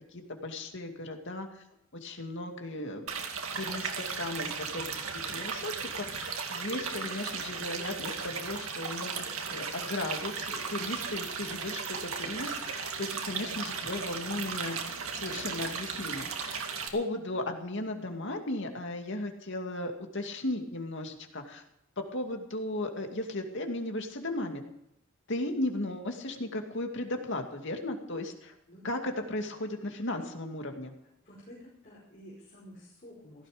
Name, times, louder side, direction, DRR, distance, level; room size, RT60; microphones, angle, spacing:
voice 1, 0.1-1.6 2.0-3.1 3.5-14.8 15.1-16.6 16.9-21.6 22.0-24.6 25.3-28.5 28.8-30.9, left 1 dB, 60° left, 4 dB, 2.4 m, -36 dB
sound 1, 3.1-16.9, right 5 dB, 85° right, 2.2 m, -36 dB
voice 2, 13.0-13.6 28.7-28.8 29.4-29.5 31.2-33.5, equal, 40° left, -5 dB, 5.0 m, -51 dB
16.5 x 14.5 x 5.2 m, 0.80 s
head